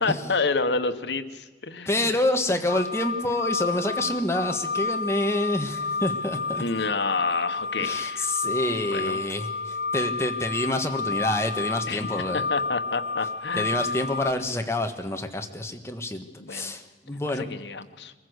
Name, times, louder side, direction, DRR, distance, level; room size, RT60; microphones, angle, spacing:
voice 1, 0.0-2.2 6.6-8.3 8.9-9.2 11.9-12.1 12.3-13.8 16.4-16.7 17.5-18.1, left 4 dB, 85° left, 10 dB, 1.2 m, -29 dB
voice 2, 1.9-6.6 7.8-12.5 13.5-17.5, left 1 dB, 15° left, 5 dB, 1.4 m, -27 dB
sound 1, 2.7-14.3, left 4 dB, 65° left, 1.2 m, -30 dB
24.0 x 15.0 x 8.1 m, 1.3 s
head